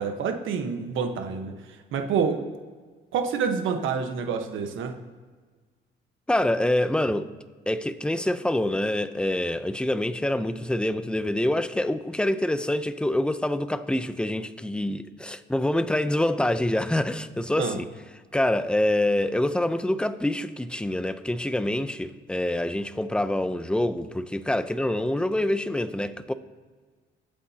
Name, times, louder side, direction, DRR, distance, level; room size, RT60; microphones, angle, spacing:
voice 1, 0.0-1.5 1.9-2.4 3.1-4.9 17.6-17.8, right 6 dB, 80° right, 1.3 m, -27 dB
voice 2, 6.3-7.3 7.7-17.9 18.3-26.3, left 1 dB, 5° left, 0.7 m, -26 dB
20.5 x 8.5 x 2.9 m
cardioid pair, 90°, 20 cm